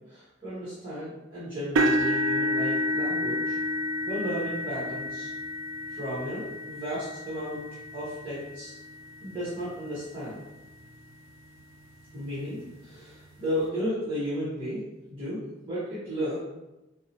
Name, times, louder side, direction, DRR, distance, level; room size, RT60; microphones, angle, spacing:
voice 1, 0.1-3.6 4.0-5.3 5.9-7.6 7.9-8.7 9.2-10.4 12.1-14.8 15.1-15.4 15.7-16.4, equal, 25° right, -10 dB, 1.1 m, -34 dB
sound 1, 1.8-9.8 10.4-10.7 11.1-11.2 12.6-12.7, equal, 85° right, 0.4 m, -30 dB
4.5 x 2.0 x 2.8 m, 1.0 s
head